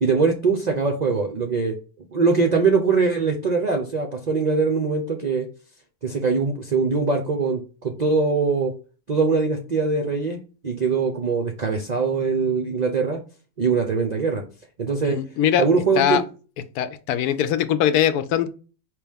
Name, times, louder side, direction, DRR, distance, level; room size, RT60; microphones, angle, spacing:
voice 1, 0.0-1.8 2.1-5.5 6.0-8.7 9.1-10.4 10.6-13.2 13.6-14.4 14.8-15.2 15.6-16.3, right 4 dB, 60° right, 0.4 m, -22 dB
voice 2, 15.1-15.6 16.0-16.2 16.8-18.5, left 10 dB, 80° left, 1.1 m, -21 dB
5.0 x 2.9 x 3.5 m
omnidirectional pair, 1.6 m